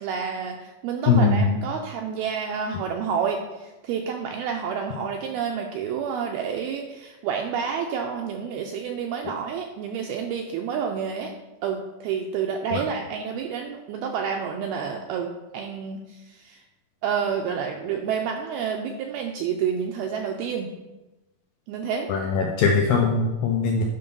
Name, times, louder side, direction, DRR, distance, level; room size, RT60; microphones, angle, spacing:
voice 1, 0.0-11.3 11.6-16.6 17.0-20.7 21.7-22.1, right 7 dB, 80° right, 2 dB, 2.3 m, -29 dB
voice 2, 1.1-1.6 12.7-12.8 22.1-23.8, left 4 dB, 85° left, 1 dB, 2.0 m, -21 dB
9.4 x 6.0 x 5.4 m, 1.1 s
omnidirectional pair, 5.1 m